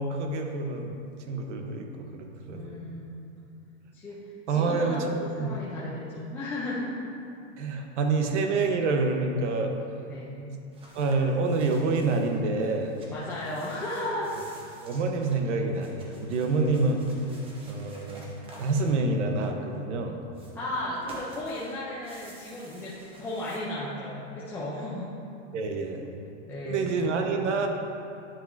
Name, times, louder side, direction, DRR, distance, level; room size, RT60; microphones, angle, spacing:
voice 1, 0.0-2.8 4.5-5.5 7.6-9.7 10.5-10.6 10.9-13.0 14.8-17.0 17.7-18.3 18.6-20.2 25.5-26.0 26.6-27.7, right 3 dB, 75° right, 4 dB, 0.9 m, -27 dB
voice 2, 2.5-3.3 3.9-6.9 10.1-10.5 13.1-14.4 20.5-25.2 26.4-26.9, left 1 dB, 5° left, -8 dB, 0.4 m, -35 dB
sound 1, 10.7-12.4 12.7-19.7 20.3-23.6, right 1 dB, 15° right, 0.8 m, -51 dB
9.8 x 5.7 x 2.5 m, 2.6 s
supercardioid pair, 150°, 36 cm